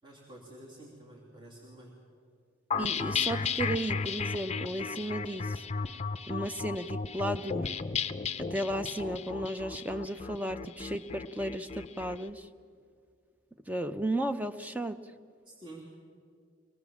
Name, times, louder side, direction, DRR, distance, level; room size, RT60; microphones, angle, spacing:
voice 1, 0.0-2.0 15.4-15.8, right 1 dB, 25° right, -6 dB, 3.1 m, -49 dB
sound 1, 2.7-12.2, left 5 dB, 30° left, 0.6 m, -34 dB
voice 2, 2.8-5.6 6.3-7.7 8.4-12.5 13.7-15.0, right 1 dB, 5° right, 8 dB, 0.6 m, -34 dB
24.0 x 18.5 x 7.1 m, 2.1 s
head